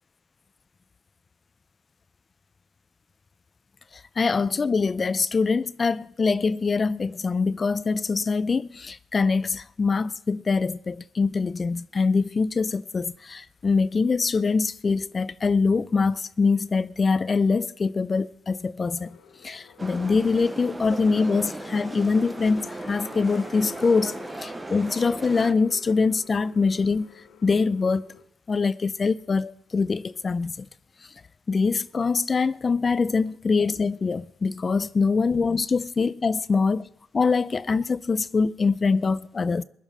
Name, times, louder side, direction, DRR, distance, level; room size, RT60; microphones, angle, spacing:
voice 1, 3.9-19.2 19.4-27.1 27.4-28.1 28.5-30.7 31.5-36.9 37.1-39.6, left 4 dB, 35° left, 0.4 m, -24 dB
sound 1, 19.0-28.2, left 7 dB, 90° left, 1.4 m, -50 dB
sound 2, 19.8-25.5, right 2 dB, 15° right, 0.5 m, -37 dB
21.5 x 7.2 x 5.4 m
cardioid pair, 90°, 0 cm